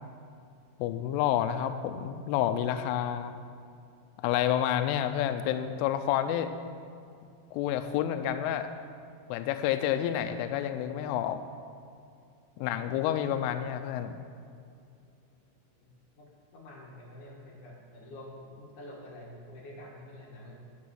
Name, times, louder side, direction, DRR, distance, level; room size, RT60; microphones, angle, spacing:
voice 1, 0.8-3.3 4.2-6.5 7.5-8.7 9.3-11.4 12.6-14.1, left 10 dB, 85° left, 9 dB, 3.0 m, -29 dB
voice 2, 16.5-20.6, left 1 dB, 60° left, -2 dB, 2.2 m, -48 dB
12.0 x 6.2 x 7.9 m, 2.4 s
omnidirectional pair, 5.7 m